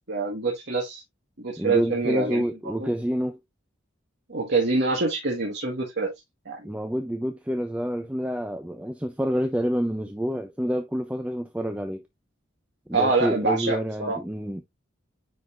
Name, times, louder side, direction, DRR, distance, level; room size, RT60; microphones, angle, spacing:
voice 1, 0.1-1.0 1.4-2.9 4.3-6.1 6.4-6.6 12.9-14.2, right 3 dB, 60° right, 1.7 m, -26 dB
voice 2, 1.6-3.4 6.6-12.0 12.9-14.6, equal, 5° right, 0.5 m, -28 dB
9.3 x 4.1 x 2.5 m
head